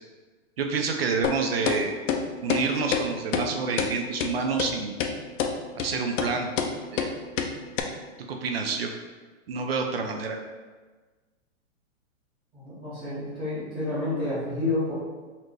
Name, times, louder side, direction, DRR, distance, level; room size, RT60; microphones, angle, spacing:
voice 1, 0.6-2.0 2.4-4.9 5.8-6.5 6.9-7.1 8.3-8.9 9.5-10.4, right 4 dB, 50° right, 3 dB, 0.4 m, -28 dB
sound 1, 1.2-1.4 1.7-1.8 2.1-2.2 2.5-2.6 2.9-3.0 3.3-3.5 3.8-3.9 4.2-4.3 4.6-4.7 5.0-5.1 5.4-5.5 5.8-5.9 6.2-6.3 6.6-6.7 7.0-7.1 7.4-7.5 7.8-7.9, left 7 dB, 70° left, 0.6 m, -26 dB
voice 2, 12.5-14.9, left 2 dB, 5° right, -15 dB, 0.7 m, -29 dB
4.2 x 2.6 x 3.1 m, 1.3 s
hypercardioid pair, 165°, 39 cm